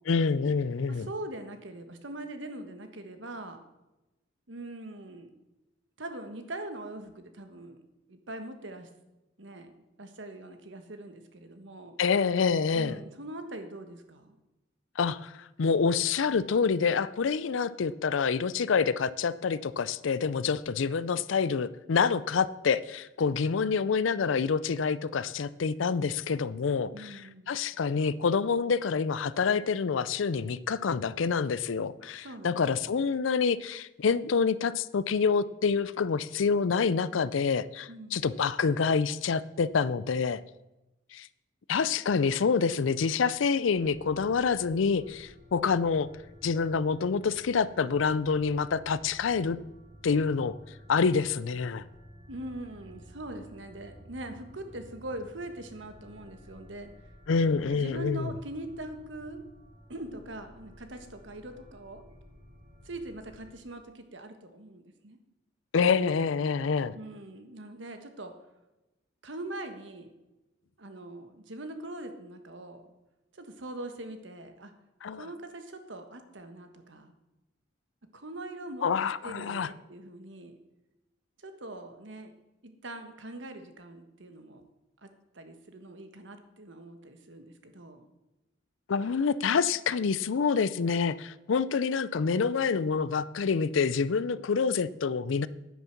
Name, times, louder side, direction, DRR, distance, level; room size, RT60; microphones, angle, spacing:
voice 1, 0.1-1.1 12.0-13.0 15.0-15.3 15.6-27.2 27.5-40.4 41.1-41.3 41.7-46.1 46.4-49.6 50.0-50.6 50.9-51.8 57.3-58.3 65.7-67.0 75.0-75.2 78.8-79.7 88.9-95.5, left 5 dB, 75° left, 17 dB, 0.5 m, -27 dB
voice 2, 0.9-3.6 4.5-5.3 6.0-7.8 8.1-8.9 9.4-9.7 10.0-12.0 12.7-14.4 26.9-27.6 32.2-33.0 37.9-38.3 52.3-56.9 57.7-59.4 59.9-62.0 62.8-65.2 66.9-68.3 69.2-70.1 70.8-72.9 73.3-74.7 75.2-77.1 78.1-78.9 79.2-80.6 81.4-82.3 82.6-84.6 85.0-85.1 85.3-88.1, right 1 dB, 65° right, 7 dB, 1.4 m, -42 dB
sound 1, 43.6-63.5, equal, 30° right, 3.3 m, -53 dB
9.6 x 9.4 x 5.9 m, 1.0 s
head